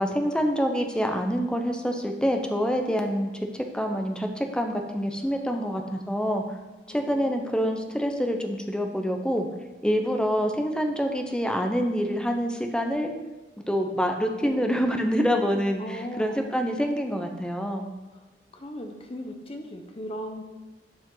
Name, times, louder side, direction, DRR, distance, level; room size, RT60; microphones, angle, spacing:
voice 1, 0.0-6.6 6.9-9.5 9.8-13.1 13.7-17.8, equal, 5° left, 4 dB, 0.7 m, -26 dB
voice 2, 5.5-6.1 6.9-7.9 14.4-14.6 15.8-16.4 18.5-20.4, equal, 35° left, 4 dB, 0.7 m, -38 dB
12.0 x 5.0 x 3.9 m, 1.1 s
head